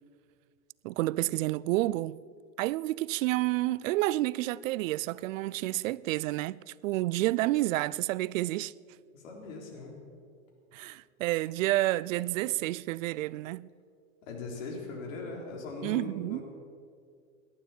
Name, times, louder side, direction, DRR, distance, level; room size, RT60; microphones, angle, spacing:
voice 1, 0.8-2.2 2.6-8.7 10.7-13.7 15.8-16.4, right 17 dB, 65° right, 0.5 m, -29 dB
voice 2, 9.1-10.0 14.3-16.4, left 3 dB, 65° left, 3.9 m, -40 dB
19.0 x 11.5 x 4.4 m
hypercardioid pair, 105°, 42 cm